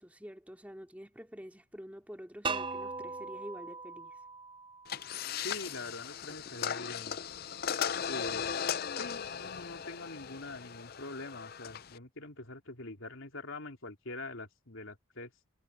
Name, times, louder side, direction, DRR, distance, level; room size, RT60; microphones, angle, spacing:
voice 1, 0.0-4.2, equal, 5° right, 3.0 m, -47 dB
sound 1, 2.4-5.3, right 4 dB, 25° right, 0.5 m, -39 dB
sound 2, 4.9-12.0, left 8 dB, 45° left, 0.5 m, -37 dB
voice 2, 5.4-7.2 8.1-8.5 9.0-15.3, left 2 dB, 70° left, 3.2 m, -44 dB
head